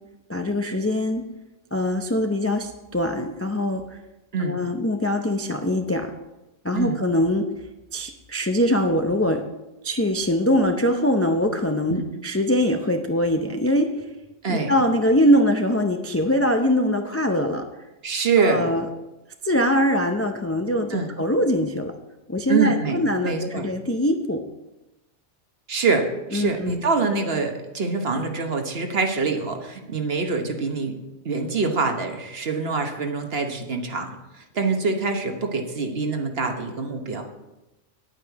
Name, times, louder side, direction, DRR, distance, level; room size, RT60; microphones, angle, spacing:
voice 1, 0.3-1.2 1.7-4.0 4.4-6.1 6.6-7.5 7.9-9.4 9.8-14.1 14.5-17.7 18.4-18.9 19.4-21.9 22.3-24.4 26.3-26.8, equal, 20° left, 5 dB, 0.4 m, -22 dB
voice 2, 18.0-18.6 20.9-21.1 22.5-23.0 23.2-23.7 25.7-31.0 31.2-34.1 34.5-37.2, right 4 dB, 55° right, 4 dB, 1.3 m, -25 dB
9.9 x 8.8 x 4.7 m, 1.0 s
omnidirectional pair, 1.2 m